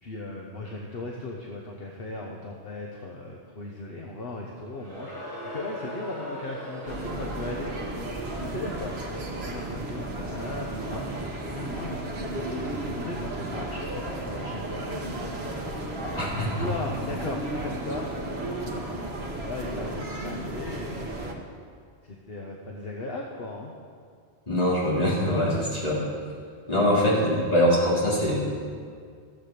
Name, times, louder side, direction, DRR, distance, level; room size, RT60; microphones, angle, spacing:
voice 1, 0.0-5.1 5.4-7.7 8.4-9.0 9.4-11.1 11.5-12.2 12.5-14.9 16.6-18.1 18.4-21.1 22.0-23.7 26.7-27.1, left 2 dB, 60° left, 0 dB, 1.3 m, -37 dB
Crowd, 4.7-9.7, left 1 dB, 20° left, 3.5 m, -40 dB
sound 1, 6.9-21.3, right 1 dB, 70° right, 1.5 m, -34 dB
voice 2, 16.2-16.5 24.5-26.0 26.7-28.4, equal, 35° left, -6 dB, 3.2 m, -23 dB
14.5 x 7.4 x 6.7 m, 2.1 s
omnidirectional pair, 1.1 m